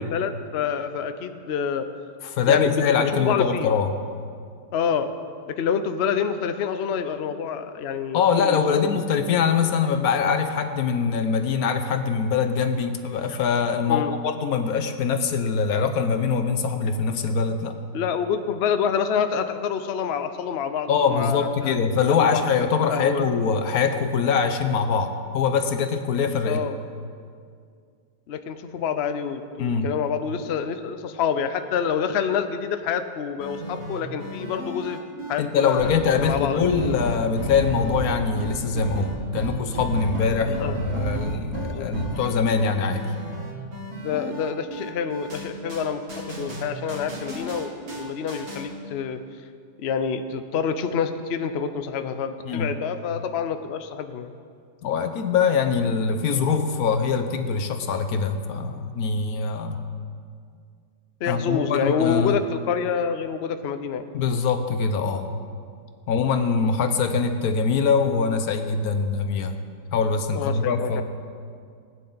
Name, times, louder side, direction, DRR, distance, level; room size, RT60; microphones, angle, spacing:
voice 1, 0.0-1.9 2.5-3.7 4.7-5.1 5.5-9.1 13.9-14.1 17.9-21.8 22.1-22.4 22.7-23.3 26.4-26.8 28.3-35.0 35.3-36.7 40.5-40.7 41.7-41.9 44.0-46.0 46.3-49.2 49.8-54.3 61.2-64.1 70.3-71.0, left 7 dB, 85° left, 9 dB, 0.5 m, -27 dB
voice 2, 2.2-3.9 8.1-17.8 20.9-26.6 29.6-29.9 35.4-43.1 52.5-52.7 54.8-59.8 61.3-62.4 64.1-65.3 66.1-69.6 69.9-71.0, left 5 dB, 60° left, 7 dB, 1.2 m, -23 dB
sound 1, 33.4-48.7, right 1 dB, 55° right, 2.3 m, -32 dB
19.0 x 9.4 x 3.9 m, 2.2 s
omnidirectional pair, 1.9 m